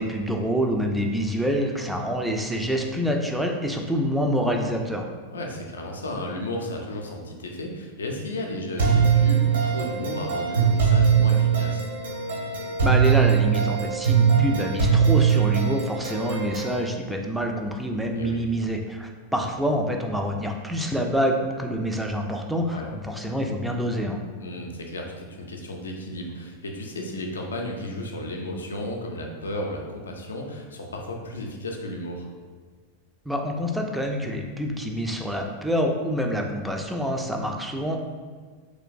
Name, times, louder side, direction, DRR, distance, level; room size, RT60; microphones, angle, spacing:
voice 1, 0.0-5.1 12.8-24.2 33.3-38.0, equal, 5° right, 1 dB, 0.3 m, -26 dB
voice 2, 5.3-11.8 18.1-18.5 22.7-22.9 24.4-32.3, left 1 dB, 70° left, 1 dB, 0.4 m, -33 dB
sound 1, 8.8-16.8, right 7 dB, 60° right, 0.8 m, -21 dB
3.1 x 3.0 x 2.4 m, 1.5 s
figure-of-eight pair, 90°, 0 cm